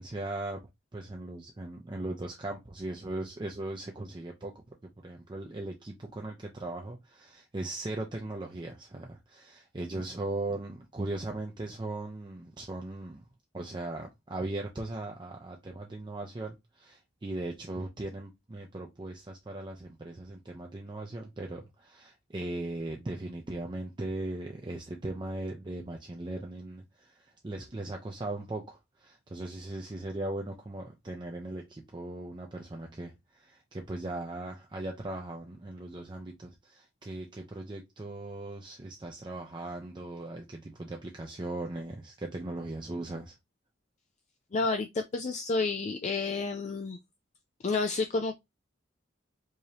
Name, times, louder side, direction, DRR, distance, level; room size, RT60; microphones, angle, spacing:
voice 1, 0.0-4.6 5.0-13.2 13.5-43.4, right 2 dB, 25° right, 0.5 m, -38 dB
voice 2, 44.5-47.0 47.6-48.4, left 3 dB, 35° left, 0.4 m, -30 dB
4.8 x 2.7 x 2.7 m
head